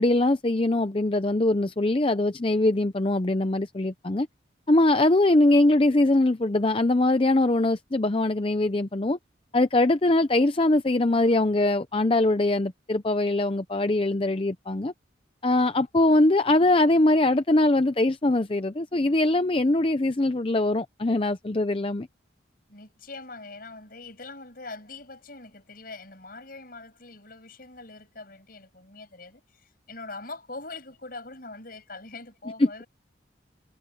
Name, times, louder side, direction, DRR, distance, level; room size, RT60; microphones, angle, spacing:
voice 1, 0.0-4.3 4.7-9.2 9.5-14.9 15.4-22.1 32.6-32.7, left 2 dB, 30° left, 0.6 m, -22 dB
voice 2, 22.7-32.9, left 3 dB, 50° left, 6.9 m, -43 dB
head